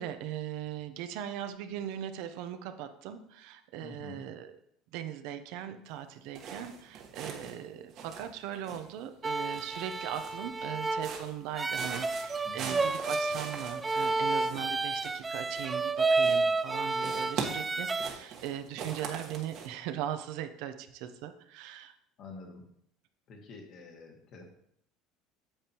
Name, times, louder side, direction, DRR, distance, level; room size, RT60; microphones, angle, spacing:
voice 1, 0.0-4.5 4.9-21.9, right 10 dB, 70° right, 8 dB, 0.7 m, -39 dB
voice 2, 3.8-4.2 12.4-12.8 22.2-22.6 23.3-24.5, left 3 dB, 55° left, 1 dB, 1.9 m, -47 dB
sound 1, 6.3-7.6 7.9-9.1 9.4-10.5 10.9-11.4 11.7-15.9 16.2-16.7 17.0-19.7, right 6 dB, 50° right, 1.3 m, -42 dB
sound 2, 9.2-18.1, right 3 dB, 15° right, 0.3 m, -31 dB
8.8 x 6.7 x 3.0 m, 0.73 s
supercardioid pair, 115°, 0 cm